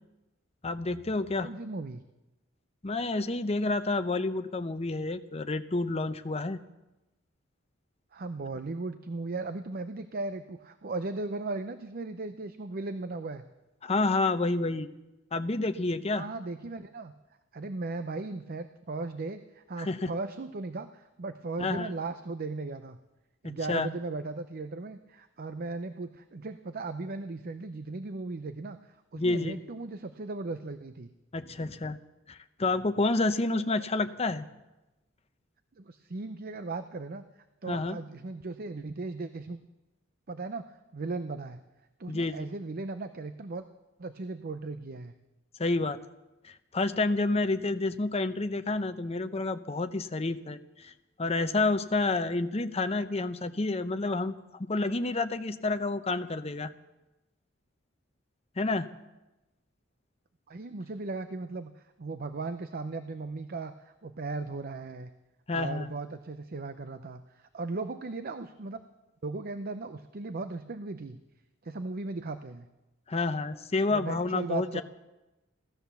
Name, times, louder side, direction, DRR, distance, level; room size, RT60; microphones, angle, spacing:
voice 1, 0.6-1.5 2.8-6.6 13.8-14.9 15.3-16.3 19.8-20.1 21.6-21.9 23.4-23.9 29.2-29.6 31.3-32.0 32.3-34.5 37.7-38.0 42.1-42.5 45.6-46.0 46.4-50.9 51.2-54.3 54.6-56.7 58.6-58.9 65.5-65.9 73.1-74.7, left 3 dB, 30° left, 10 dB, 0.7 m, -29 dB
voice 2, 1.4-2.0 8.1-13.4 16.1-17.1 17.5-23.0 23.4-31.1 35.8-37.2 37.6-39.6 40.3-40.6 40.9-41.6 42.0-43.7 44.0-45.1 60.5-61.7 62.0-65.1 65.5-68.8 69.2-71.2 71.6-72.7 73.9-74.8, right 3 dB, 50° right, 10 dB, 0.6 m, -37 dB
16.5 x 13.0 x 6.9 m, 1.0 s
head